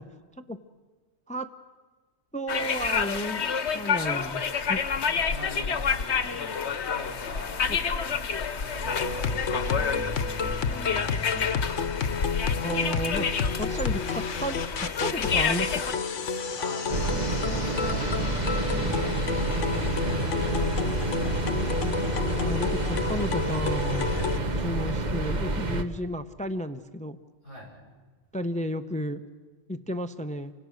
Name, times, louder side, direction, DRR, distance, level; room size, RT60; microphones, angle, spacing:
voice 1, 2.3-3.4 3.7-4.8 12.6-13.3 13.6-16.0 20.5-20.7 22.4-24.1 24.6-27.2 28.3-29.2 29.7-30.5, equal, 10° left, 10 dB, 0.6 m, -33 dB
sound 1, 2.5-15.9, left 6 dB, 65° left, 1.3 m, -29 dB
voice 2, 5.0-11.3 16.2-21.4 24.1-24.8 27.4-27.7, equal, 90° right, -2 dB, 7.7 m, -44 dB
sound 2, 8.8-24.4, left 5 dB, 90° left, 1.4 m, -30 dB
sound 3, 16.9-25.8, right 2 dB, 40° right, 1.2 m, -28 dB
29.5 x 25.0 x 6.5 m, 1.4 s
omnidirectional pair, 1.2 m